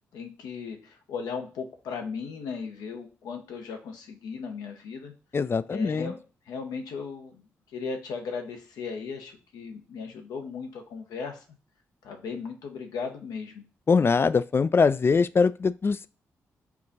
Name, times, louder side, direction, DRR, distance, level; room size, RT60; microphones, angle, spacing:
voice 1, 0.1-5.1 5.7-6.2 6.5-7.4 7.7-11.4 12.0-13.7, left 5 dB, 80° left, 0.8 m, -37 dB
voice 2, 5.3-6.1 13.9-16.1, left 5 dB, 35° left, 0.3 m, -22 dB
4.7 x 2.4 x 4.0 m
hypercardioid pair, 40°, 7 cm